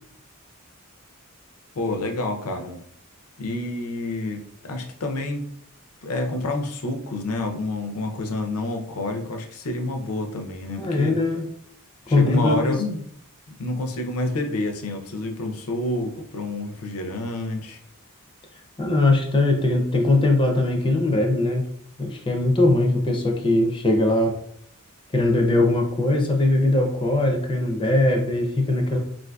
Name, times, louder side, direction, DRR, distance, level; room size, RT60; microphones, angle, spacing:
voice 1, 1.8-2.8 3.4-5.5 6.0-11.2 12.1-13.0 13.6-17.8, left 2 dB, 80° left, 5 dB, 0.5 m, -28 dB
voice 2, 10.8-11.5 12.1-12.8 18.8-21.6 22.0-24.3 25.1-29.0, left 2 dB, 20° left, 3 dB, 0.4 m, -20 dB
3.8 x 2.5 x 2.2 m, 0.67 s
head